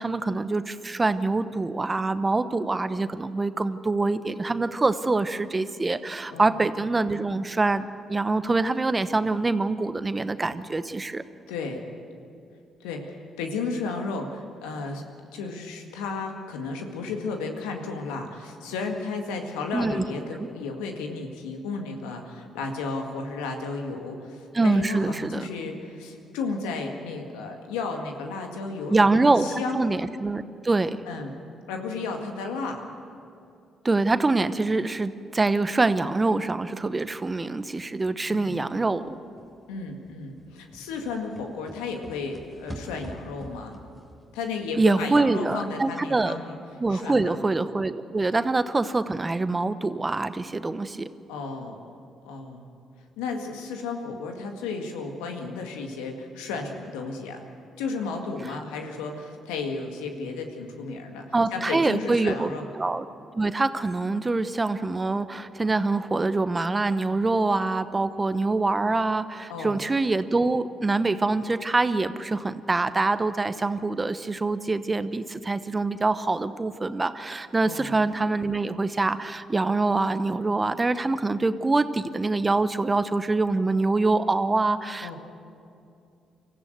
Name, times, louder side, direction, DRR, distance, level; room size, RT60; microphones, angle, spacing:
voice 1, 0.0-11.2 19.7-20.0 24.5-25.4 28.9-31.0 33.8-39.2 44.8-46.3 46.8-51.1 61.3-63.0 63.4-85.2, right 3 dB, 25° right, 12 dB, 1.0 m, -25 dB
voice 2, 6.3-6.6 11.5-11.8 12.8-15.0 15.3-29.8 31.1-31.3 31.7-32.8 38.3-38.6 39.7-43.8 44.3-46.5 46.9-47.4 51.3-51.9 52.2-52.7 53.2-57.4 57.8-62.7 69.5-69.8 77.6-77.9 85.0-85.2, left 4 dB, 85° left, 3 dB, 1.9 m, -33 dB
sound 1, 36.9-37.3 37.6-37.7 38.0-45.8 46.0-46.1, equal, 20° left, 3.5 m, -46 dB
24.5 x 15.0 x 8.1 m, 2.5 s
hypercardioid pair, 50°, 0 cm